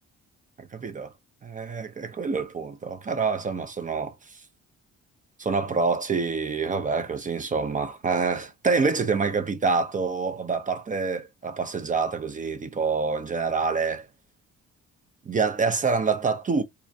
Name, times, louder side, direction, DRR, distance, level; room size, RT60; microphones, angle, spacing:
voice 1, 0.6-1.1 1.4-4.4 5.4-14.1 15.3-16.6, right 4 dB, 25° right, 0.4 m, -26 dB
2.4 x 2.0 x 2.6 m
cardioid pair, 90°, 30 cm